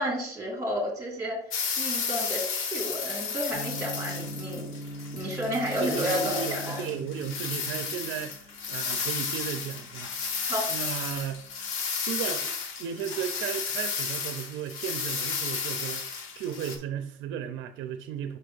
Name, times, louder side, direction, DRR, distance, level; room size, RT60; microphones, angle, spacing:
voice 1, 0.0-1.4 1.8-4.6 5.1-6.8 10.4-10.7, equal, 15° right, 2.1 m, -31 dB
sound 1, 1.5-16.8, left 5 dB, 85° left, 1.1 m, -33 dB
Gong, 3.5-11.6, equal, 5° left, 1.9 m, -41 dB
voice 2, 5.8-10.3 10.7-11.4 12.0-12.5 12.8-16.1 16.4-18.4, right 9 dB, 75° right, 0.6 m, -35 dB
5.6 x 3.4 x 5.4 m
cardioid pair, 175°, 20 cm